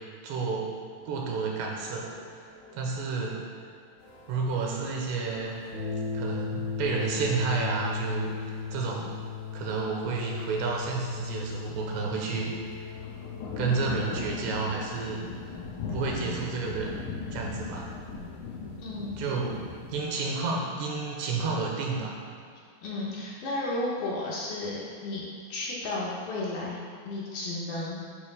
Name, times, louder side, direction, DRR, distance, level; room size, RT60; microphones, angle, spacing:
voice 1, 0.2-0.7 1.1-2.5 2.7-3.4 4.3-5.5 6.1-9.1 9.5-12.5 13.6-15.3 15.9-17.0 17.3-17.9 19.2-22.2, right 4 dB, 80° right, -1 dB, 3.1 m, -31 dB
sound 1, 1.1-16.0, left 5 dB, 50° left, 1.0 m, -38 dB
sound 2, 4.0-20.0, left 4 dB, 85° left, 3.2 m, -40 dB
voice 2, 18.8-19.2 22.8-25.2 25.5-28.0, left 2 dB, 70° left, -5 dB, 2.5 m, -33 dB
9.3 x 3.2 x 6.6 m, 2.3 s
omnidirectional pair, 5.0 m